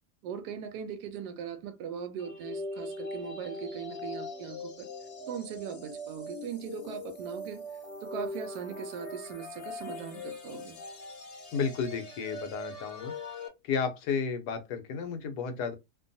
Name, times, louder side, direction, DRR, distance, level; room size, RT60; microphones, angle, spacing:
voice 1, 0.2-4.9 5.3-7.6 8.0-10.8, right 7 dB, 90° right, 1.2 m, -39 dB
sound 1, 2.2-13.5, left 1 dB, 60° left, 1.0 m, -41 dB
voice 2, 11.5-13.1 13.6-15.7, left 6 dB, 85° left, 1.3 m, -32 dB
2.9 x 2.2 x 2.6 m
omnidirectional pair, 1.7 m